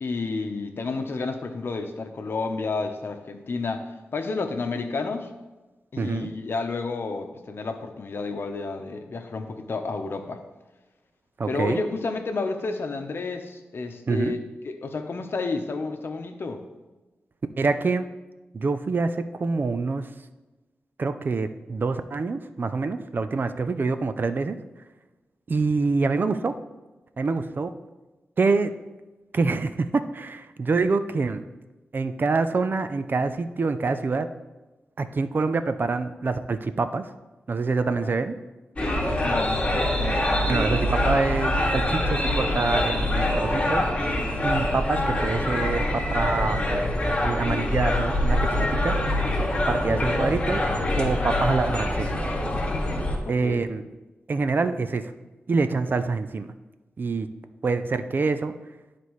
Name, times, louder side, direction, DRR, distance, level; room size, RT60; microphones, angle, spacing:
voice 1, 0.0-5.3 5.9-10.4 11.5-14.4 14.6-16.6 38.0-38.1 39.2-40.7 49.9-50.1 53.2-53.6, left 3 dB, 60° left, 5 dB, 0.8 m, -31 dB
voice 2, 6.0-6.3 11.4-11.8 14.1-14.4 17.6-18.1 18.5-20.1 21.0-24.6 25.5-26.6 27.2-27.7 28.4-28.7 29.3-31.4 31.9-34.3 35.0-37.1 37.5-38.4 40.5-43.8 44.4-46.7 47.2-49.0 49.7-50.7 50.9-52.2 53.3-53.8 54.3-55.1 55.5-56.5 57.0-57.3 57.6-58.5, right 4 dB, 50° right, 10 dB, 0.5 m, -26 dB
sound 1, 38.8-53.2, left 1 dB, 25° left, 1.5 m, -24 dB
12.5 x 4.1 x 3.2 m, 1.1 s
cardioid pair, 70°, 4 cm